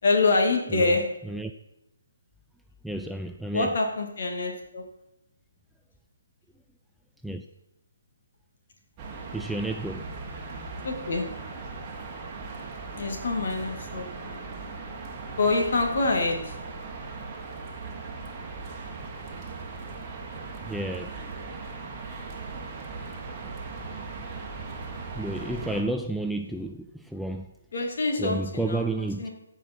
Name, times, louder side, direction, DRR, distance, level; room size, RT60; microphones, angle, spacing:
voice 1, 0.0-1.0 3.5-4.8 10.8-11.2 12.9-14.4 15.4-16.6 27.7-29.3, left 3 dB, 55° left, 2 dB, 2.3 m, -26 dB
voice 2, 2.8-3.7 7.2-7.4 9.3-10.1 20.6-21.2 25.1-27.5 28.2-29.3, right 2 dB, ahead, 4 dB, 0.3 m, -31 dB
sound 1, 9.0-25.8, right 4 dB, 20° right, 1.5 m, -38 dB
14.5 x 5.2 x 4.5 m, 0.85 s
figure-of-eight pair, 150°, 0 cm